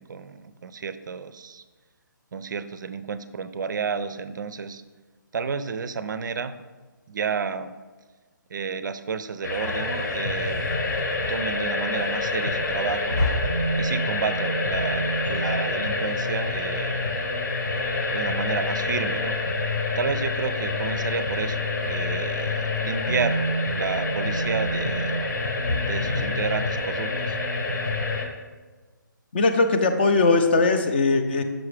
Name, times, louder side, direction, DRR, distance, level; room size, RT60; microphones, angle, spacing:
voice 1, 0.0-1.6 2.3-4.8 5.3-6.5 7.1-7.7 8.5-10.6 11.3-13.2 13.8-17.2 18.1-19.4 20.0-25.2 25.8-27.4, right 5 dB, 65° right, 12 dB, 0.4 m, -31 dB
sound 1, 9.4-28.3, left 2 dB, 60° left, 1.1 m, -26 dB
voice 2, 29.3-31.4, left 3 dB, 30° left, 6 dB, 0.4 m, -20 dB
6.0 x 4.8 x 3.3 m, 1.3 s
hypercardioid pair, 165°, 11 cm